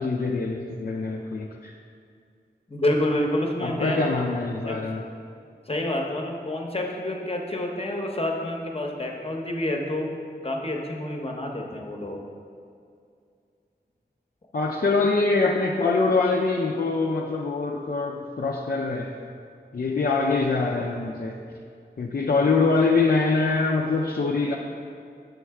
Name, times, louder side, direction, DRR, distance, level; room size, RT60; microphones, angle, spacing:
voice 1, 0.0-1.8 3.6-5.0 14.5-19.2 19.7-21.4 22.0-24.6, left 3 dB, 55° left, -1 dB, 0.4 m, -24 dB
voice 2, 2.7-4.1 4.6-4.8 5.7-12.2, left 1 dB, 35° left, 0 dB, 0.8 m, -28 dB
6.3 x 3.2 x 4.7 m, 2.3 s
wide cardioid pair, 40°, 18 cm